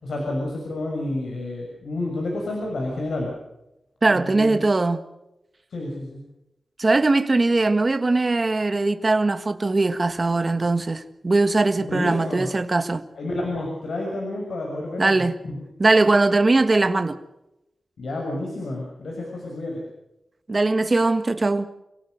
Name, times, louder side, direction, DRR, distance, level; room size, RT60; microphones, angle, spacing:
voice 1, 0.0-3.3 4.1-4.6 5.7-6.2 11.8-12.5 13.2-15.2 18.0-19.8, left 2 dB, 85° left, 6.5 m, -30 dB
voice 2, 4.0-5.0 6.8-13.0 15.0-15.4 15.8-17.2 20.5-21.7, right 3 dB, 30° right, 1.7 m, -20 dB
29.0 x 17.0 x 6.6 m
wide cardioid pair, 130°, 0 cm